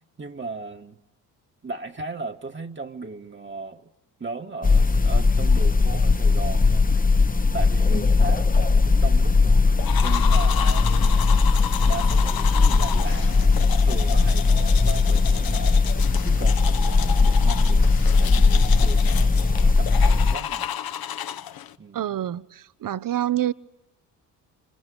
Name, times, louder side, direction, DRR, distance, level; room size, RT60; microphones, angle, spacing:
voice 1, 0.2-1.0 1.6-3.9 4.2-6.9 7.5-9.6 10.0-11.4 11.9-13.5 13.9-15.8 16.2-17.9 18.2-20.7 21.8-22.2, right 3 dB, 25° right, 1.5 m, -36 dB
sound 1, 4.6-20.4, left 4 dB, 20° left, 1.0 m, -19 dB
sound 2, 9.8-21.7, left 10 dB, 50° left, 1.1 m, -32 dB
voice 2, 21.9-23.5, right 12 dB, 45° right, 0.9 m, -27 dB
26.5 x 26.5 x 8.1 m
hypercardioid pair, 50°, 46 cm